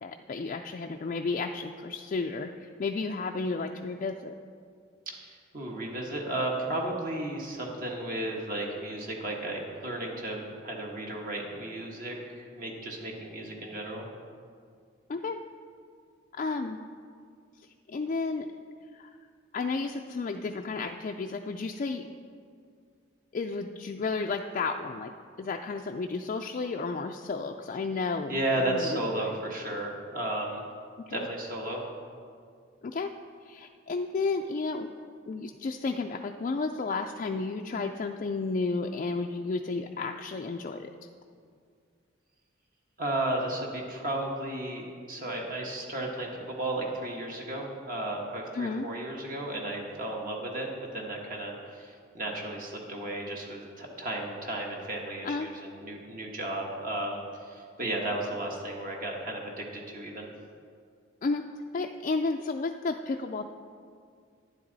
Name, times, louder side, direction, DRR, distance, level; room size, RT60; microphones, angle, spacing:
voice 1, 0.0-4.3 15.1-15.4 16.3-16.8 17.9-18.5 18.9-19.1 19.5-22.1 23.3-25.1 25.4-29.4 31.1-31.3 32.8-33.1 33.4-34.9 35.3-40.9 48.5-48.9 55.2-55.5 61.2-61.4 61.7-63.5, left 3 dB, 40° left, 3 dB, 0.3 m, -32 dB
voice 2, 5.1-14.1 28.3-30.6 31.1-31.8 43.0-50.7 50.9-60.3, right 1 dB, 45° right, -1 dB, 1.4 m, -34 dB
11.5 x 9.8 x 4.0 m, 2.2 s
head